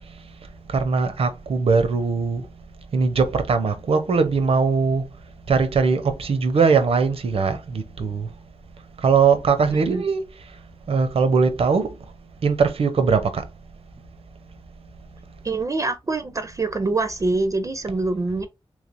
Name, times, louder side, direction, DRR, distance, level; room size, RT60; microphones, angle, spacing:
voice 1, 0.7-2.5 2.9-5.1 5.5-8.3 9.0-10.2 10.9-12.0 12.4-13.5, right 5 dB, 85° right, 0.6 m, -20 dB
voice 2, 15.4-18.5, right 3 dB, 35° right, 0.4 m, -25 dB
3.5 x 3.2 x 2.5 m
wide cardioid pair, 90°, 10 cm